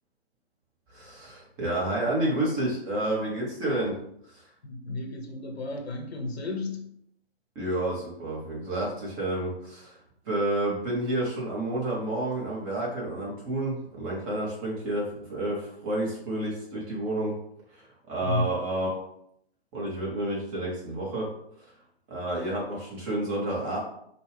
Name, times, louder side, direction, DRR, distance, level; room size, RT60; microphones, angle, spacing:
voice 1, 0.9-4.0 4.3-4.4 7.5-17.3 17.7-19.0 19.7-21.3 21.6-21.7 22.1-23.8, right 1 dB, 20° right, -4 dB, 1.1 m, -30 dB
voice 2, 4.6-6.9 18.2-18.5, left 2 dB, 75° left, 2 dB, 1.0 m, -32 dB
4.2 x 2.3 x 3.3 m, 0.72 s
hypercardioid pair, 140°, 32 cm